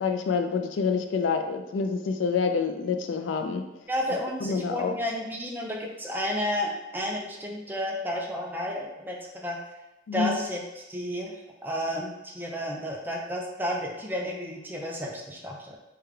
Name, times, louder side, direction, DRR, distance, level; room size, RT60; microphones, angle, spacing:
voice 1, 0.0-3.6 4.4-4.9 10.1-10.4, left 5 dB, 80° left, 7 dB, 0.3 m, -27 dB
voice 2, 3.9-9.2 9.4-9.6 10.1-11.3 11.6-15.8, equal, 10° right, -1 dB, 0.4 m, -32 dB
3.3 x 2.2 x 3.5 m, 0.99 s
head